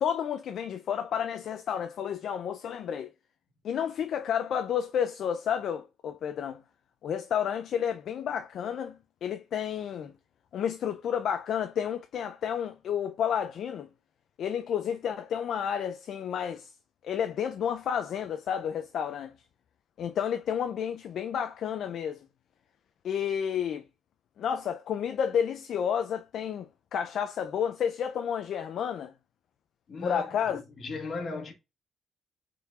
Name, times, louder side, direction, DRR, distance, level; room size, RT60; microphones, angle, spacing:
voice 1, 0.0-3.1 3.6-6.6 7.0-10.1 10.5-13.9 14.4-16.7 17.0-19.4 20.0-22.3 23.0-23.8 24.4-29.1 30.0-30.6, left 8 dB, 70° left, 0.3 m, -31 dB
voice 2, 29.9-30.3 30.5-31.5, left 3 dB, 50° left, 1.3 m, -36 dB
4.1 x 3.8 x 2.3 m
cardioid pair, 90°, 0 cm